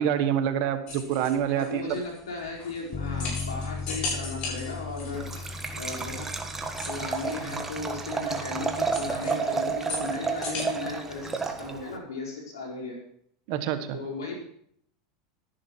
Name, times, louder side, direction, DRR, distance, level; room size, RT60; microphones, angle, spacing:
voice 1, 0.0-2.0 13.5-14.0, right 9 dB, 60° right, 9 dB, 1.4 m, -26 dB
sound 1, 0.9-10.6, left 3 dB, 45° left, 6.8 m, -39 dB
voice 2, 1.5-5.3 5.7-6.4 6.9-13.0 13.9-14.4, left 3 dB, 85° left, -2 dB, 4.6 m, -36 dB
Bass guitar, 2.9-9.2, left 4 dB, 30° left, 0.8 m, -38 dB
Liquid, 5.1-12.0, right 4 dB, 15° right, 1.4 m, -31 dB
12.5 x 11.0 x 4.6 m, 0.68 s
hypercardioid pair, 105°, 2 cm